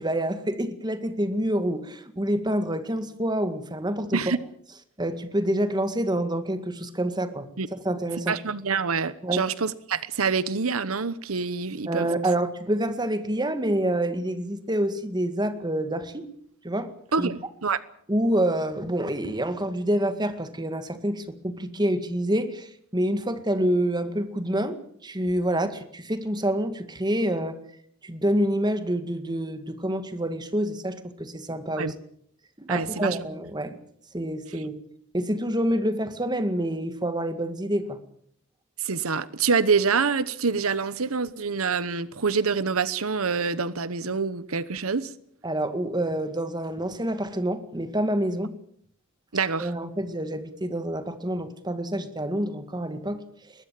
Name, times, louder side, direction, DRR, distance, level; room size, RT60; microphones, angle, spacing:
voice 1, 0.0-4.2 5.0-7.5 7.8-8.3 9.2-9.4 11.9-16.3 16.6-16.9 17.2-17.3 18.1-24.8 25.0-27.6 28.0-31.9 32.6-33.8 34.1-34.7 35.1-38.0 45.4-48.5 49.6-53.5, right 1 dB, 20° right, 9 dB, 2.0 m, -27 dB
voice 2, 8.3-12.1 17.1-17.8 31.8-31.9 32.7-33.2 34.5-34.6 38.8-45.1 49.3-49.7, right 5 dB, 85° right, 16 dB, 1.0 m, -26 dB
22.5 x 19.5 x 7.6 m, 0.66 s
head